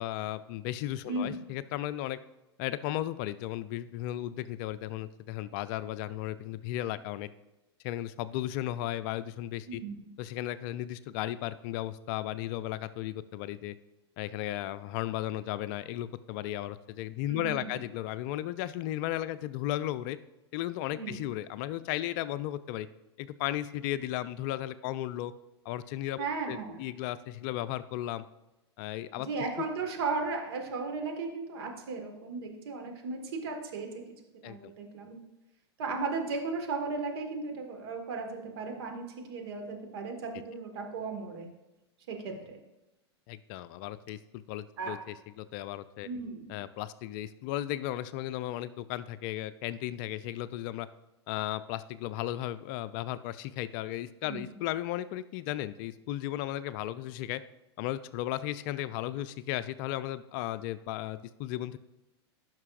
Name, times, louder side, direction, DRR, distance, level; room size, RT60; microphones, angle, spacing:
voice 1, 0.0-2.2 2.6-7.3 7.8-9.8 10.2-13.7 14.2-20.2 20.5-22.9 23.2-25.3 25.6-28.2 28.8-29.3 34.4-34.7 43.3-46.1 46.5-50.9 51.3-57.4 57.8-61.8, left 14 dB, 45° left, 14 dB, 0.5 m, -35 dB
voice 2, 1.1-1.4 9.7-10.0 17.3-17.8 20.9-21.2 26.2-26.8 29.2-34.0 34.4-35.2 35.8-41.5 42.1-42.6 44.8-45.0 46.0-46.5 54.2-54.5, right 4 dB, 60° right, 2 dB, 1.8 m, -36 dB
15.0 x 6.0 x 2.5 m, 0.97 s
hypercardioid pair, 100°, 14 cm